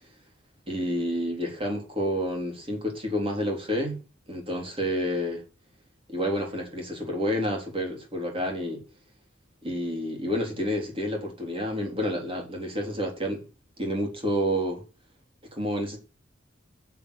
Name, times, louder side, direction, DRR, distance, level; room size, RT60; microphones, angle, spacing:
voice 1, 0.7-4.0 4.3-5.4 6.1-8.8 9.6-13.4 13.8-14.8 15.5-16.0, equal, 30° right, 3.9 m, -29 dB
7.6 x 7.5 x 8.3 m
head